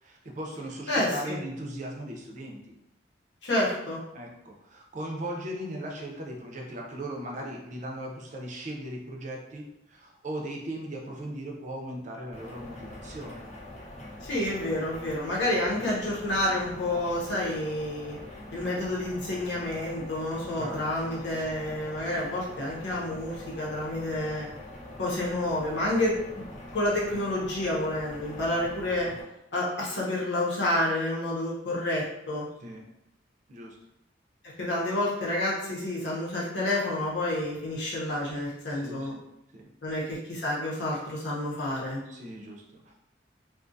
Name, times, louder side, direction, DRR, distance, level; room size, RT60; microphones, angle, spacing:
voice 1, 0.0-2.6 4.1-13.5 20.5-21.2 21.7-21.8 32.6-32.9 33.5-33.8 38.7-39.2 39.5-39.7 42.1-43.0, right 1 dB, 40° right, 0 dB, 0.5 m, -38 dB
voice 2, 0.9-1.4 3.4-4.0 14.2-18.2 18.5-24.5 25.0-26.4 26.7-29.1 29.5-32.5 34.6-39.1 39.8-42.0, left 1 dB, 75° left, -5 dB, 0.8 m, -29 dB
sound 1, 12.3-29.2, left 1 dB, 40° left, 0.5 m, -44 dB
2.4 x 2.3 x 2.5 m, 0.87 s
head